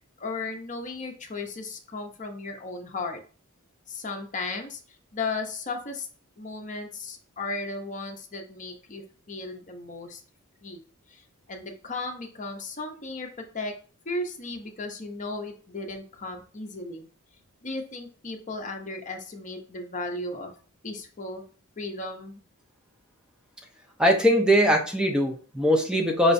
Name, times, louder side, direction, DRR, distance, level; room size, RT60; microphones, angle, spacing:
voice 1, 0.2-3.2 3.9-4.8 5.1-6.1 6.4-10.2 10.6-10.8 11.1-13.3 13.5-13.8 14.0-17.1 17.6-20.5 20.8-21.4 21.8-22.4, left 3 dB, 35° left, 4 dB, 0.7 m, -35 dB
voice 2, 24.0-26.3, equal, 5° right, 2 dB, 0.5 m, -21 dB
5.4 x 3.0 x 2.6 m, 0.40 s
head